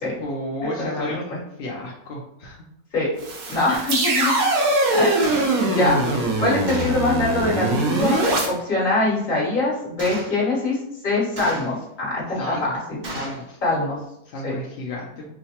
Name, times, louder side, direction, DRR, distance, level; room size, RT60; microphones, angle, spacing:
voice 1, 0.2-2.6 3.7-3.9 4.9-5.2 12.3-12.8 13.1-13.6 14.2-15.3, left 1 dB, 65° left, -4 dB, 0.6 m, -32 dB
sound 1, 3.2-8.5, right 2 dB, 70° right, 1.2 m, -22 dB
voice 2, 3.5-4.3 4.9-5.1 5.7-6.0 6.4-8.2 8.5-10.8 11.0-13.0 13.6-14.0 14.4-14.6, left 2 dB, 35° left, -5 dB, 1.3 m, -23 dB
Gunshot gunfire, 5.2-5.5 6.7-7.1 8.2-8.6 10.0-10.4 11.4-11.8 13.0-13.4, right 1 dB, 45° right, 0.6 m, -33 dB
4.7 x 2.1 x 2.8 m, 0.80 s
omnidirectional pair, 1.6 m